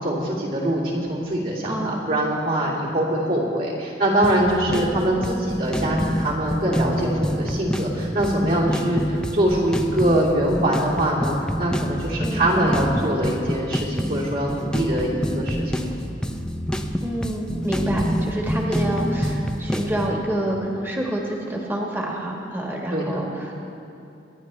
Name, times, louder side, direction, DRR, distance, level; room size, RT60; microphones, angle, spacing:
voice 1, 0.0-15.9 22.9-23.1, right 1 dB, 55° right, -5 dB, 3.1 m, -23 dB
voice 2, 1.6-2.0 4.7-5.0 12.2-12.5 17.0-23.5, right 1 dB, 15° right, -2 dB, 1.4 m, -28 dB
sound 1, 4.2-20.1, equal, 5° left, 0.6 m, -27 dB
25.0 x 11.0 x 3.3 m, 2.7 s
head